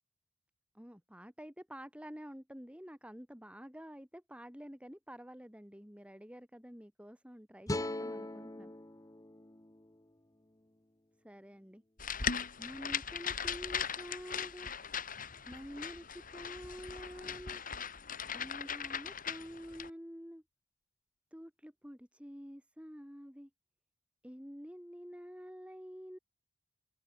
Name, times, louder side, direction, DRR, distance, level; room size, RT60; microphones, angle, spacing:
voice 1, 0.7-8.7 11.2-11.8 12.6-14.7 15.5-17.6 18.3-20.4 21.3-23.5 24.2-26.2, equal, 5° right, 6.4 m, -49 dB
sound 1, 7.7-10.9, left 1 dB, 20° left, 1.1 m, -41 dB
sound 2, 12.0-19.9, left 7 dB, 45° left, 4.9 m, -39 dB
open air
head